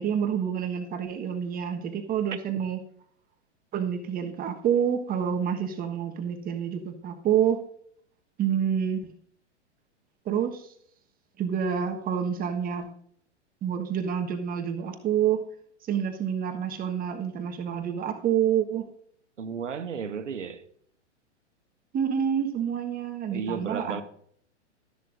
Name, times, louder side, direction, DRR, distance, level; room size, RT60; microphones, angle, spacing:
voice 1, 0.0-2.8 3.7-7.6 8.4-9.1 10.2-10.7 11.4-12.9 13.6-15.4 15.8-18.9 21.9-24.0, right 8 dB, 25° right, 1.3 m, -28 dB
voice 2, 2.3-2.6 19.4-20.6 23.3-24.0, right 6 dB, 80° right, 1.1 m, -33 dB
13.0 x 11.0 x 2.6 m
hypercardioid pair, 110°, 36 cm